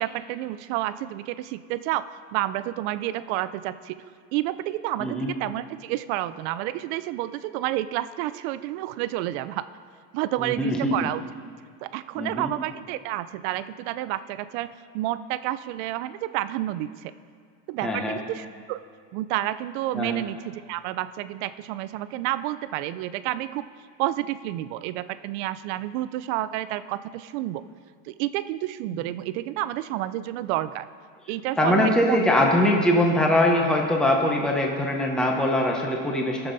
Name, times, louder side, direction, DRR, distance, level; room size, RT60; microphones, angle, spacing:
voice 1, 0.0-2.0 2.3-4.0 4.3-9.6 10.1-11.2 11.8-17.1 17.7-18.8 19.1-23.7 24.0-27.6 28.1-30.9 31.3-32.2, right 14 dB, 70° right, 14 dB, 0.6 m, -30 dB
voice 2, 5.0-5.3 10.4-11.1 12.2-12.5 17.8-18.2 19.9-20.2 31.6-36.5, left 1 dB, ahead, 0 dB, 0.9 m, -22 dB
20.0 x 7.0 x 4.1 m, 2.1 s
supercardioid pair, 145°, 35 cm